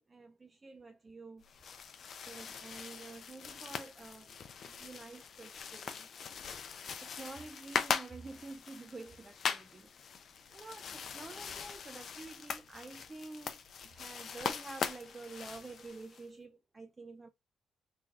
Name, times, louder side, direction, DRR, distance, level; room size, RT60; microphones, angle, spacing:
voice 1, 0.0-1.5 2.3-4.3 4.6-6.1 7.0-9.9 10.5-17.3, right 3 dB, 25° right, 0.5 m, -49 dB
sound 1, 1.4-16.2, left 6 dB, 55° left, 0.5 m, -41 dB
3.2 x 2.3 x 3.7 m
cardioid pair, 90°, 0 cm